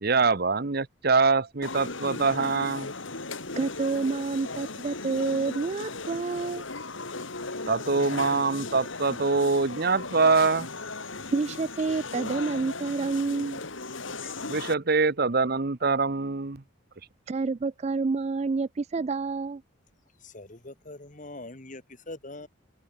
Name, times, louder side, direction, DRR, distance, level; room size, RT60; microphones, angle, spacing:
voice 1, 0.0-2.9 7.7-10.7 14.5-16.6, right 4 dB, 50° right, 0.9 m, -24 dB
sound 1, 1.6-14.7, left 3 dB, 70° left, 3.2 m, -37 dB
voice 2, 3.6-6.6 11.3-13.6 17.3-19.6, right 4 dB, 30° right, 0.3 m, -28 dB
voice 3, 20.2-22.5, left 2 dB, 40° left, 1.7 m, -43 dB
head